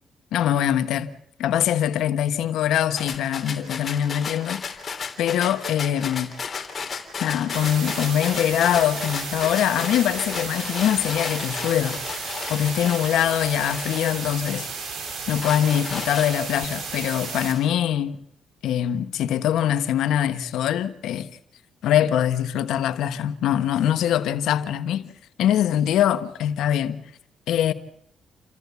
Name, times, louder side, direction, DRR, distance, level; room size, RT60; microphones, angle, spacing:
voice 1, 0.3-1.1 1.4-4.7 5.2-6.3 7.2-12.0 12.5-14.7 15.3-18.2 18.6-21.3 21.8-25.1 25.4-27.0 27.5-27.7, left 10 dB, 80° left, 1.3 m, -23 dB
sound 1, 3.0-14.6 15.1-16.6, left 5 dB, 40° left, 3.4 m, -34 dB
sound 2, 7.5-17.5, right 4 dB, 60° right, 7.1 m, -33 dB
28.5 x 14.0 x 8.3 m
cardioid pair, 90°, 0 cm